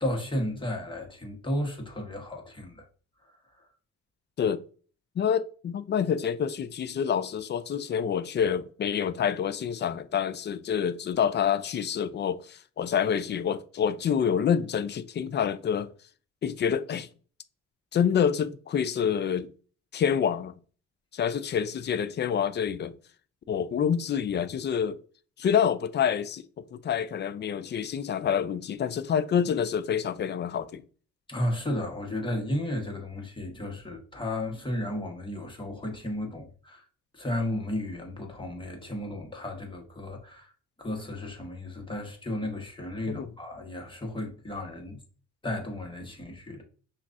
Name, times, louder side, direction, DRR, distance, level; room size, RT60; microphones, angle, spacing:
voice 1, 0.0-2.8 31.3-36.8 37.1-40.5 40.8-45.0 45.4-46.6, left 1 dB, 15° left, 1.1 m, -33 dB
voice 2, 5.2-15.9 16.4-17.1 17.9-19.5 19.9-20.5 21.1-23.0 23.5-25.0 25.4-30.8 43.1-43.3, left 8 dB, 35° left, 0.4 m, -27 dB
5.8 x 2.4 x 2.5 m
cardioid pair, 90°, 30 cm